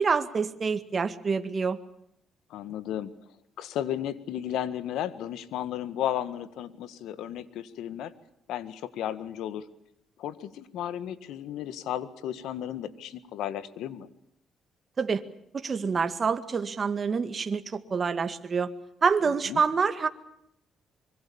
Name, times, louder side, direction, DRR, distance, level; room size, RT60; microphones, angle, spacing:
voice 1, 0.0-1.8 15.0-15.2 15.5-18.7 19.0-20.1, right 5 dB, 40° right, 9 dB, 2.0 m, -27 dB
voice 2, 2.5-3.1 3.6-8.1 8.5-9.6 10.2-14.1 19.5-19.6, left 11 dB, 85° left, 14 dB, 1.7 m, -34 dB
25.0 x 23.5 x 7.2 m, 0.75 s
cardioid pair, 90°, 0 cm